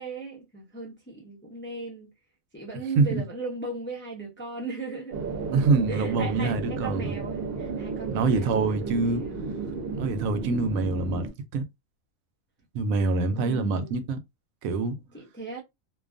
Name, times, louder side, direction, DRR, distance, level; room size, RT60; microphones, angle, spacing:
voice 1, 0.0-2.1 2.5-5.2 5.9-9.8 13.3-14.0 15.1-15.6, right 3 dB, 15° left, 0.4 m, -37 dB
sound 1, 5.1-11.3, right 4 dB, 55° right, 0.8 m, -33 dB
voice 2, 5.5-7.1 8.1-9.2 10.0-11.3 11.5-11.6 12.7-14.2 14.6-15.0, right 3 dB, 85° right, 1.0 m, -25 dB
2.5 x 2.3 x 2.4 m
omnidirectional pair, 1.4 m